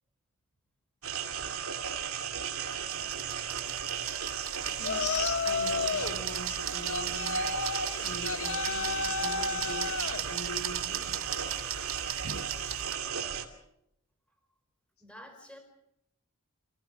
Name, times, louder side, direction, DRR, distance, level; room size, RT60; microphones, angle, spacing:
sound 1, 1.0-13.4, right 8 dB, 80° right, 2.6 m, -35 dB
sound 2, 2.7-12.9, right 10 dB, 65° right, 1.1 m, -38 dB
voice 1, 4.8-7.4 8.0-9.9 10.3-11.2, left 2 dB, 90° left, 5 dB, 3.4 m, -40 dB
Yell, 4.8-6.2 6.9-10.2, left 4 dB, 65° left, 1.1 m, -32 dB
voice 2, 15.0-15.6, equal, 5° left, 4 dB, 4.8 m, -50 dB
26.0 x 16.5 x 7.5 m, 0.79 s
head